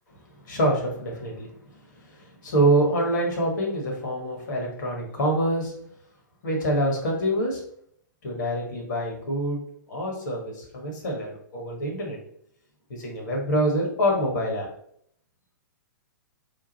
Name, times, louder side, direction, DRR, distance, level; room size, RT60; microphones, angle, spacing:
voice 1, 0.4-1.5 2.0-5.7 6.4-7.6 8.2-9.6 9.9-12.2 12.9-14.7, right 1 dB, 65° left, 0 dB, 1.6 m, -26 dB
3.7 x 2.5 x 4.1 m, 0.67 s
hypercardioid pair, 115°, 11 cm